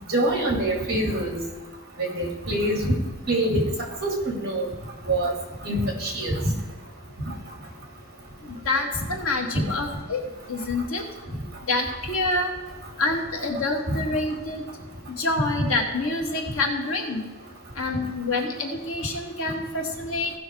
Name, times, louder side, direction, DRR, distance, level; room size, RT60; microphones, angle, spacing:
voice 1, 0.1-1.4 2.0-2.9 3.3-3.6 4.0-4.7 5.1-5.3 5.6-6.3 9.5-9.6 13.9-14.0 15.6-15.7, right 1 dB, 45° right, 0 dB, 2.5 m, -24 dB
voice 2, 8.4-11.1 11.7-12.5 13.0-14.7 15.1-17.2 17.7-20.3, left 2 dB, 80° left, 2 dB, 1.7 m, -27 dB
16.5 x 5.8 x 4.6 m, 1.3 s
head